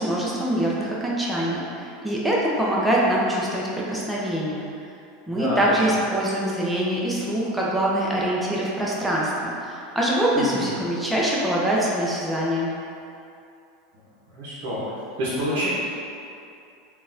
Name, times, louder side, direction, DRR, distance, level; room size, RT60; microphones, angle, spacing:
voice 1, 0.0-4.7 5.3-12.7, right 1 dB, 5° right, -6 dB, 0.6 m, -24 dB
voice 2, 5.3-5.8 10.4-10.7 14.3-14.8 15.2-15.7, equal, 65° right, -9 dB, 0.8 m, -28 dB
3.8 x 2.4 x 2.6 m, 2.6 s
hypercardioid pair, 90°, 0 cm